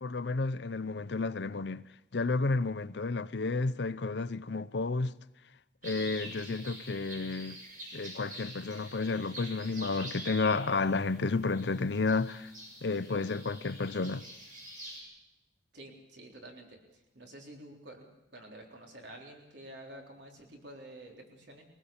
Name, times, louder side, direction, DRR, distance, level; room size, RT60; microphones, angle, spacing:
voice 1, 0.0-1.8 2.1-5.1 5.8-7.6 7.9-12.5 12.8-14.2, left 3 dB, 75° left, 0.7 m, -31 dB
sound 1, 5.8-15.0, right 1 dB, 50° right, 7.6 m, -46 dB
voice 2, 15.7-16.8 17.1-18.1 18.3-21.7, right 1 dB, 80° right, 3.8 m, -49 dB
23.0 x 19.5 x 7.2 m
head